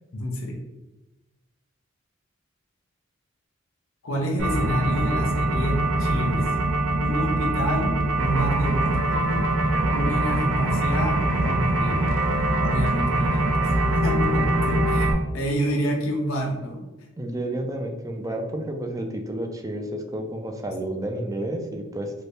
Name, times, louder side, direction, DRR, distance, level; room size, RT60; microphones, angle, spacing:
voice 1, 0.1-0.6 4.0-6.5 7.0-9.5 9.9-12.2 12.6-15.1 15.3-16.8, equal, 85° left, 1 dB, 0.6 m, -28 dB
sound 1, 4.4-15.1, right 1 dB, 80° right, 0.6 m, -23 dB
voice 2, 17.2-22.1, right 1 dB, 15° right, 4 dB, 0.3 m, -30 dB
2.8 x 2.6 x 3.2 m, 1.1 s
head